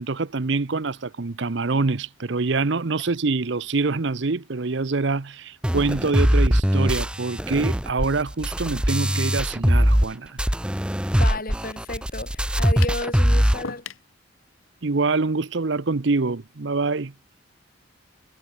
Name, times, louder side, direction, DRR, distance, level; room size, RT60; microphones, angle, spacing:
voice 1, 0.0-10.4 14.8-17.1, right 3 dB, 60° right, 0.8 m, -25 dB
sound 1, 5.6-10.1 10.4-13.6, equal, 5° right, 0.8 m, -21 dB
voice 2, 11.1-13.8, left 2 dB, 45° left, 3.8 m, -32 dB
sound 2, 12.8-13.1 13.6-14.1, left 5 dB, 80° left, 1.6 m, -35 dB
head